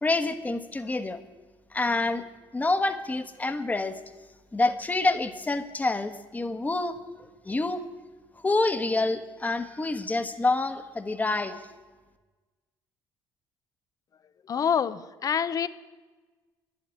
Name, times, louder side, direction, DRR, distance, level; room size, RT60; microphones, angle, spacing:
voice 1, 0.0-1.2 1.7-2.2 2.5-4.0 4.5-7.0 7.4-7.8 8.4-11.6, left 2 dB, 20° left, 9 dB, 1.2 m, -27 dB
voice 2, 14.5-15.7, left 7 dB, 45° left, 15 dB, 0.7 m, -26 dB
11.0 x 8.1 x 9.4 m, 1.3 s
supercardioid pair, 85°, 9 cm